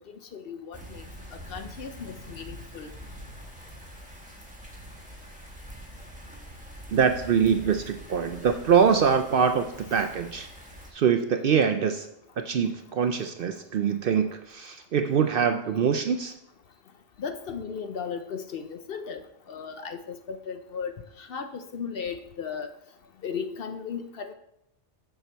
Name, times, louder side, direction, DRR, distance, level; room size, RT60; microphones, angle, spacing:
voice 1, 0.1-1.0 1.3-2.9 17.2-22.7 23.2-24.3, left 6 dB, 60° left, 8 dB, 0.7 m, -36 dB
sound 1, 0.7-10.9, equal, 5° right, 1.2 m, -45 dB
voice 2, 6.9-9.7 9.9-10.5 10.9-12.1 12.4-16.3, right 7 dB, 60° right, 7 dB, 0.6 m, -24 dB
6.9 x 6.7 x 4.5 m, 0.78 s
omnidirectional pair, 1.3 m